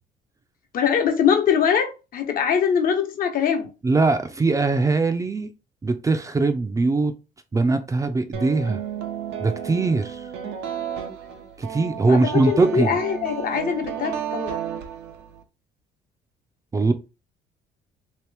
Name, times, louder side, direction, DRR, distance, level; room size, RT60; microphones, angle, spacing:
voice 1, 0.7-3.7 12.0-12.2 12.5-14.6, left 7 dB, 55° left, 1.0 m, -22 dB
voice 2, 3.8-5.5 5.8-7.1 7.5-8.8 9.4-10.3 11.6-12.9 16.7-16.9, right 3 dB, 20° right, 0.5 m, -21 dB
sound 1, 8.3-15.4, right 9 dB, 90° right, 0.7 m, -33 dB
3.0 x 3.0 x 3.3 m
cardioid pair, 110°, 17 cm